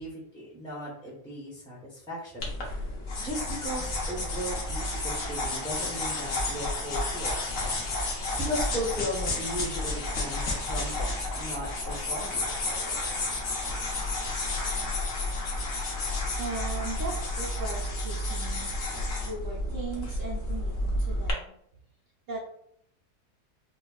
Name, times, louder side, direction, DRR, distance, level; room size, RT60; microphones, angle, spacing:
voice 1, 0.0-2.9 3.2-7.7 8.4-12.5, equal, 5° left, -6 dB, 0.5 m, -37 dB
sound 1, 2.4-21.3, left 2 dB, 60° left, 1.1 m, -31 dB
voice 2, 16.4-18.7 19.2-21.5 22.3-22.4, right 2 dB, 60° right, -5 dB, 1.0 m, -38 dB
5.1 x 2.3 x 2.3 m, 0.69 s
omnidirectional pair, 1.7 m